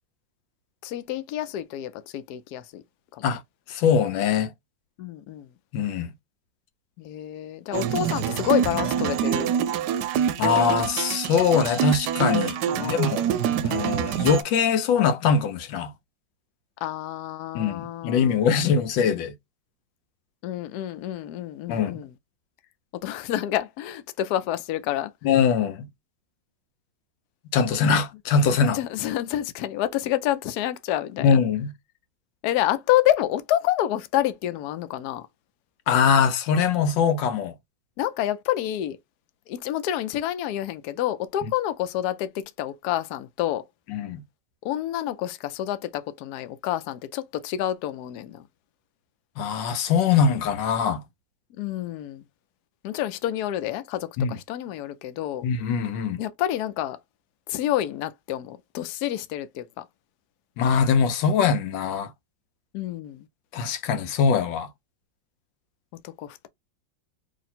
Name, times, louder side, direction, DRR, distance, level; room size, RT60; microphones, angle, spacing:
voice 1, 0.8-2.8 3.1-3.4 5.0-5.5 7.0-9.5 12.7-13.1 16.8-19.1 20.4-22.1 22.9-25.1 28.6-31.4 32.4-35.3 38.0-39.0 39.5-43.7 44.6-48.5 51.6-52.2 52.8-55.4 56.2-57.0 57.5-59.8 62.7-63.3 66.0-66.5, left 13 dB, 70° left, 1.0 m, -28 dB
voice 2, 3.7-4.5 5.7-6.1 10.4-13.3 13.6-15.9 17.5-19.3 21.7-22.0 25.2-25.9 27.5-28.8 31.2-31.7 35.9-37.5 43.9-44.2 49.4-51.0 54.2-54.4 55.4-56.2 60.6-62.1 63.5-64.7, left 6 dB, 90° left, 1.4 m, -22 dB
sound 1, 7.7-14.4, right 9 dB, 75° right, 1.1 m, -26 dB
3.0 x 2.8 x 4.2 m
omnidirectional pair, 2.0 m